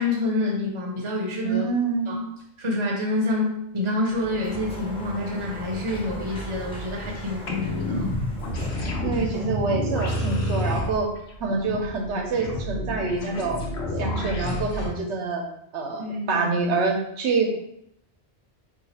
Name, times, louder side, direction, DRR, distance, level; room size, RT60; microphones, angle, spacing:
voice 1, 0.0-1.6 2.1-2.2 2.6-8.1 16.0-16.5, left 2 dB, 35° right, -1 dB, 0.6 m, -27 dB
voice 2, 1.4-2.3 9.0-11.1 11.4-13.6 14.0-15.4 15.7-17.6, right 4 dB, 85° right, 1 dB, 1.0 m, -26 dB
Sliding door, 4.0-11.2, equal, 5° left, 0.5 m, -38 dB
sound 1, 7.5-14.9, left 1 dB, 75° left, 0.9 m, -29 dB
2.7 x 2.4 x 4.0 m, 0.76 s
omnidirectional pair, 1.1 m